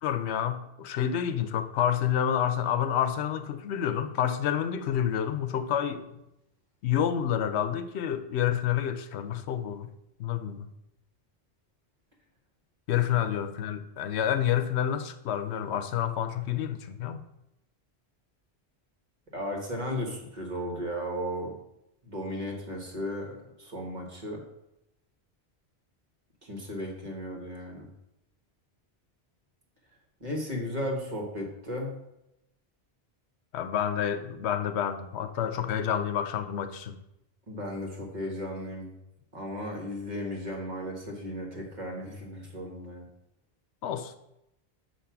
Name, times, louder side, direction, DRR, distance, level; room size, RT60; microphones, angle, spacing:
voice 1, 0.0-6.1 6.8-9.9 10.2-10.7 12.9-17.2 33.5-37.0 43.8-44.1, left 9 dB, 90° left, 0.9 m, -28 dB
voice 2, 19.3-21.5 22.0-24.4 26.4-27.9 30.2-32.0 37.5-38.9 39.3-43.0, equal, 45° right, 1.4 m, -35 dB
7.1 x 2.9 x 5.7 m
omnidirectional pair, 1.1 m